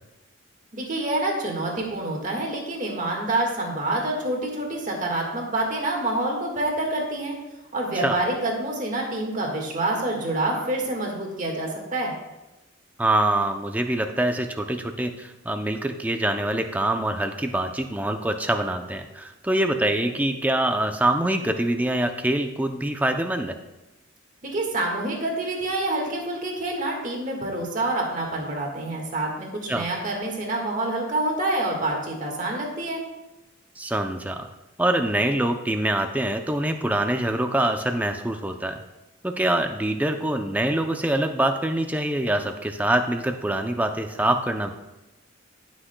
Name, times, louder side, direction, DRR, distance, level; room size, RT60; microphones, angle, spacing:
voice 1, 0.7-7.4 7.7-12.1 24.4-33.0, right 2 dB, 40° right, 0 dB, 1.6 m, -27 dB
voice 2, 13.0-23.5 29.7-29.9 33.8-34.5 34.8-38.8 39.2-44.7, right 1 dB, 10° right, 6 dB, 0.5 m, -24 dB
17.5 x 6.2 x 2.2 m, 1.0 s
head